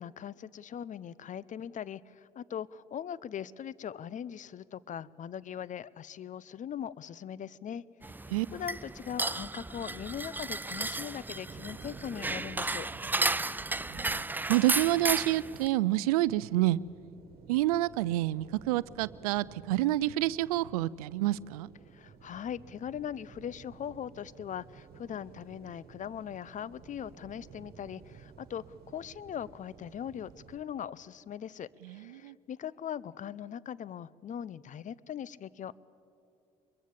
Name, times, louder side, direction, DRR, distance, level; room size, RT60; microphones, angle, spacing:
voice 1, 0.0-7.8 8.5-12.9 21.9-35.7, left 9 dB, 45° left, 21 dB, 0.6 m, -40 dB
sound 1, 8.0-15.7, right 2 dB, 10° right, 0.5 m, -34 dB
sound 2, 11.5-30.6, right 7 dB, 60° right, 1.7 m, -53 dB
voice 2, 13.9-14.2 14.5-16.8 17.5-21.7 31.9-32.3, right 16 dB, 85° right, 21 dB, 0.4 m, -28 dB
23.5 x 22.0 x 7.4 m, 2.8 s
hypercardioid pair, 55°, 18 cm